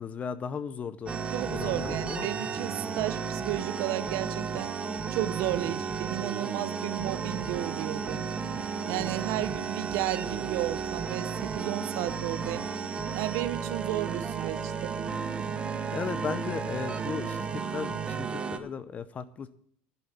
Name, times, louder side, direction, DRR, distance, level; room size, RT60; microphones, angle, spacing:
voice 1, 0.0-1.2 1.4-2.3 5.7-5.8 9.4-9.5 15.9-19.5, left 6 dB, 25° left, 0.6 m, -36 dB
sound 1, 1.1-18.6, right 5 dB, 20° right, 1.1 m, -33 dB
voice 2, 1.3-4.7 5.1-8.3 8.9-12.7 13.1-15.0, right 16 dB, 60° right, 0.9 m, -33 dB
11.0 x 7.8 x 8.5 m
supercardioid pair, 130°, 5 cm